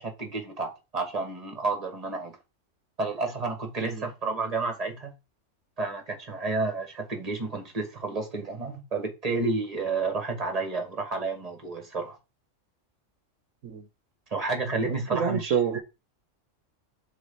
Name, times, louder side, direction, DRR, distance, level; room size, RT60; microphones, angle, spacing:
voice 1, 0.0-2.4 3.0-5.1 5.8-12.2 14.3-15.6, right 3 dB, 30° right, 1.9 m, -31 dB
voice 2, 14.8-15.8, right 7 dB, 80° right, 1.2 m, -28 dB
6.2 x 4.0 x 5.7 m
omnidirectional pair, 1.3 m